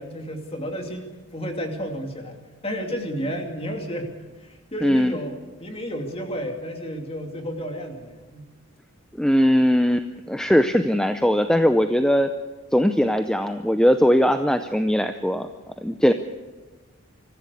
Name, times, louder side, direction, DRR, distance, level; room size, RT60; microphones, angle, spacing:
voice 1, 0.0-2.4 2.6-4.1 4.4-8.5, equal, 25° left, 3 dB, 2.7 m, -32 dB
voice 2, 4.8-5.1 9.2-12.3 12.7-15.5 15.8-16.1, equal, 5° left, 8 dB, 0.6 m, -20 dB
24.5 x 14.5 x 8.3 m, 1.3 s
head